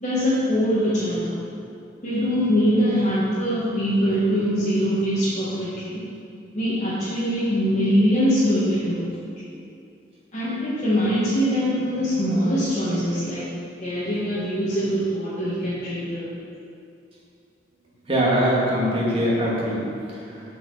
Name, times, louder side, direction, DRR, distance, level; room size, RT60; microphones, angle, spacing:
voice 1, 0.0-1.4 2.0-6.0 6.5-9.0 10.3-13.5 13.8-16.5 19.4-19.6, equal, 40° left, -11 dB, 1.7 m, -23 dB
voice 2, 18.1-20.4, equal, 30° right, -6 dB, 2.2 m, -23 dB
7.9 x 5.3 x 7.1 m, 2.4 s
head